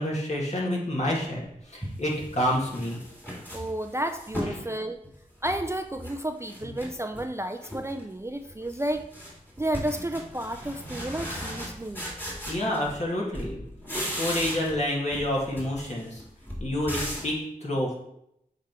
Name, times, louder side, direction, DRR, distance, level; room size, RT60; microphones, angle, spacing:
voice 1, 0.0-3.0 4.4-4.6 12.5-13.6 14.2-16.2 16.6-17.9, left 1 dB, 50° left, -4 dB, 2.1 m, -28 dB
sound 1, 1.8-4.6 5.0-6.2 6.5-7.3 7.6-8.1 8.4-13.1 13.3-14.9 15.1-17.4, equal, 15° left, 2.2 m, -37 dB
voice 2, 3.5-5.0 5.4-9.0 9.6-12.1, right 1 dB, 20° right, 7 dB, 0.4 m, -31 dB
7.4 x 3.6 x 4.6 m, 0.77 s
wide cardioid pair, 60°, 15 cm